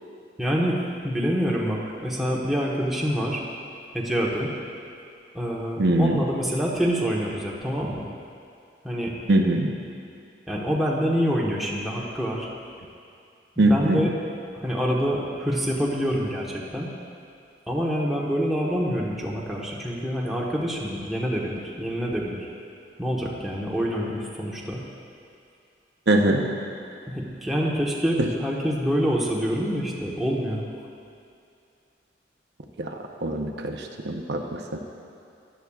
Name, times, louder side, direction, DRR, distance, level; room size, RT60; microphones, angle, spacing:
voice 1, 0.4-3.4 3.9-4.5 5.3-8.0 8.8-9.1 10.5-12.5 13.6-14.1 14.5-16.9 17.7-22.5 23.0-24.8 27.1-30.6, equal, ahead, -5 dB, 1.1 m, -26 dB
voice 2, 5.8-6.2 9.3-9.7 13.6-14.0 26.1-26.4 32.8-32.9 33.2-34.6, right 1 dB, 70° right, 2 dB, 0.8 m, -22 dB
15.5 x 11.0 x 2.4 m, 2.5 s
head